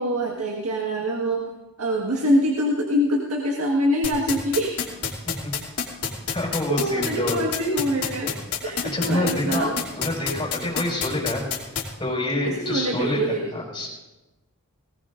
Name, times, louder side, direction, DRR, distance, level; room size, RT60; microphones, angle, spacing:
voice 1, 0.0-1.5 1.8-4.8 6.7-8.3 8.6-9.7 12.4-13.5, equal, 75° right, -1 dB, 1.7 m, -24 dB
sound 1, 4.0-11.8, left 7 dB, 75° left, 2.9 m, -26 dB
voice 2, 6.3-7.4 8.9-9.7 10.0-11.6 12.0-13.9, left 1 dB, 20° left, -3 dB, 5.8 m, -27 dB
19.5 x 19.0 x 2.6 m, 1.1 s
head